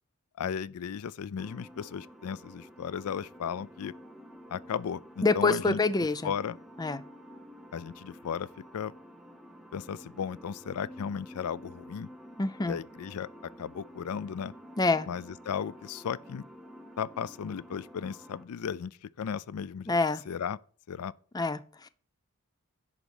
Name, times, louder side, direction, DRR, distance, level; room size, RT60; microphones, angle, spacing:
voice 1, 0.4-3.9 4.5-5.8 6.2-6.6 7.7-8.5 8.7-8.9 9.7-12.1 12.6-13.3 13.6-14.5 15.1-16.4 17.0-20.0 20.3-20.6 20.9-21.1, left 7 dB, 85° left, 0.4 m, -35 dB
sound 1, 1.4-18.5, equal, ahead, 1.0 m, -50 dB
voice 2, 5.2-6.3 6.8-7.0 12.4-12.8 14.8-15.1 19.9-20.2 21.3-21.9, left 3 dB, 15° left, 0.4 m, -26 dB
11.0 x 4.0 x 7.1 m
head